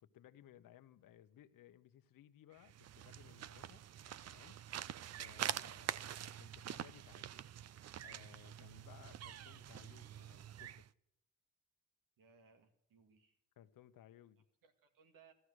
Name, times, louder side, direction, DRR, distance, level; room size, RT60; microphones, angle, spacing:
voice 1, 0.0-3.9 4.3-4.6 5.1-7.4 8.0-10.8 13.6-14.4, left 11 dB, 85° left, 1.0 m, -61 dB
sound 1, 2.6-10.9, right 11 dB, 50° right, 0.5 m, -46 dB
voice 2, 12.2-13.4 14.6-15.3, right 6 dB, 90° right, 2.1 m, -66 dB
15.0 x 14.0 x 6.4 m
cardioid pair, 125°, 32 cm